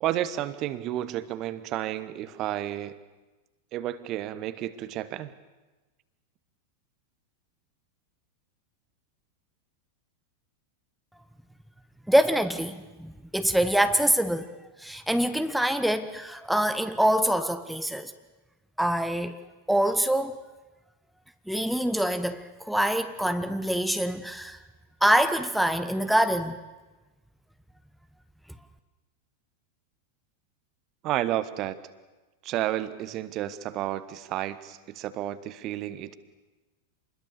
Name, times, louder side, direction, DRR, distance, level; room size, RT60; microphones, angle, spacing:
voice 1, 0.0-3.0 3.7-5.3 31.0-31.8 32.4-36.2, right 13 dB, 35° right, 1.1 m, -31 dB
voice 2, 12.1-14.5 14.8-18.1 18.8-19.4 19.7-20.4 21.5-24.6 25.0-26.6, right 1 dB, ahead, 0.9 m, -25 dB
27.0 x 21.0 x 6.8 m
figure-of-eight pair, 90°, 0 cm